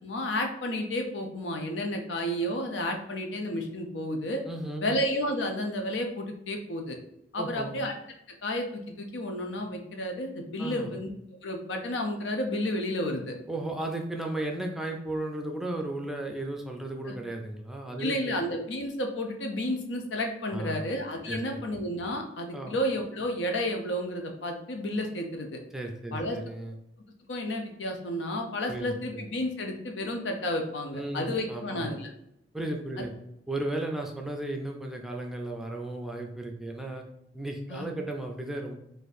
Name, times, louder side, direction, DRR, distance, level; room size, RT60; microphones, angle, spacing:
voice 1, 0.0-4.4 4.8-7.0 7.3-7.9 8.4-11.1 11.4-13.4 17.1-17.2 18.0-25.6 26.1-26.4 27.3-32.1 37.7-37.9, left 1 dB, 85° left, 4 dB, 0.6 m, -31 dB
voice 2, 4.4-5.0 7.4-7.8 10.6-11.0 13.5-18.4 20.5-20.9 21.3-21.6 22.5-22.8 25.7-26.8 28.7-29.3 30.9-32.0 32.5-33.1 33.5-37.0 37.3-38.7, right 1 dB, ahead, 1 dB, 0.4 m, -35 dB
4.0 x 2.6 x 2.6 m, 0.80 s
head